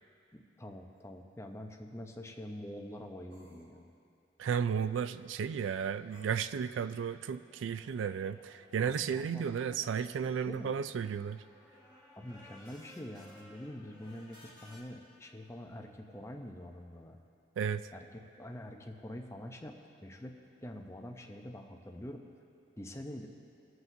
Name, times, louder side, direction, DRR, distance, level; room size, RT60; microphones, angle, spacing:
voice 1, 0.3-3.9 8.8-9.8 10.2-10.7 12.2-17.2 17.9-18.1 18.4-19.7 20.0-20.4 20.6-22.2 22.8-23.3, left 1 dB, 15° left, 3 dB, 0.6 m, -45 dB
sound 1, 1.0-1.1 3.3-3.7 6.1-6.6, equal, 65° right, 1.8 m, -60 dB
voice 2, 4.4-11.4 17.6-17.9, right 7 dB, 90° right, 13 dB, 0.3 m, -34 dB
sound 2, 7.2-14.8, left 1 dB, 25° right, 1.4 m, -59 dB
21.0 x 7.8 x 2.7 m, 2.6 s
head